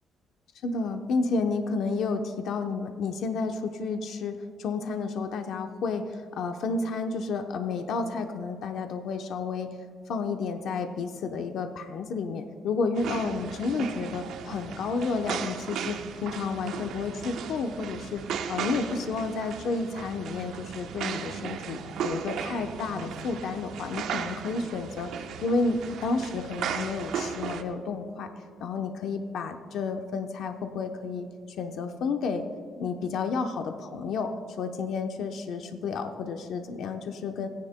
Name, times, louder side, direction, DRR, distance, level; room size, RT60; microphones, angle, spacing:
voice 1, 0.6-9.7 10.1-18.2 18.5-28.3 28.6-31.3 31.6-32.4 32.8-34.3 34.6-37.5, left 4 dB, 75° left, 5 dB, 0.8 m, -31 dB
sound 1, 12.9-27.6, right 7 dB, 80° right, 0.9 m, -36 dB
29.0 x 10.5 x 2.2 m, 2.2 s
cardioid pair, 90°, 0 cm